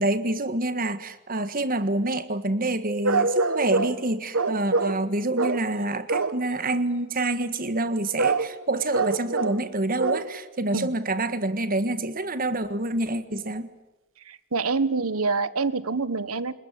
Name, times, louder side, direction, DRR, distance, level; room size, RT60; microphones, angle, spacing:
voice 1, 0.0-13.7, right 2 dB, 40° right, 11 dB, 1.5 m, -27 dB
sound 1, 3.0-4.0 4.3-5.0 5.4-5.7 6.1-6.4 8.2-8.5 8.9-9.7 10.0-10.3 10.8-10.9, right 3 dB, 60° right, 1.5 m, -25 dB
voice 2, 14.2-16.5, right 4 dB, 80° right, 15 dB, 1.4 m, -26 dB
28.0 x 21.5 x 9.8 m, 1.0 s
head